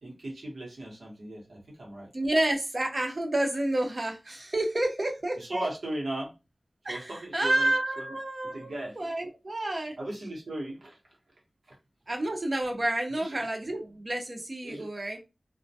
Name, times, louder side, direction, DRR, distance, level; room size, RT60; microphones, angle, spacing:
voice 1, 0.0-2.1 5.4-6.3 6.8-8.0 8.5-9.0 10.0-11.0 11.7-11.8 13.1-13.4 14.6-14.9, right 1 dB, 85° right, 1.0 m, -37 dB
voice 2, 2.1-5.7 6.8-10.0 12.1-15.2, right 1 dB, 55° right, 0.7 m, -29 dB
2.3 x 2.1 x 2.7 m
wide cardioid pair, 45°, 0 cm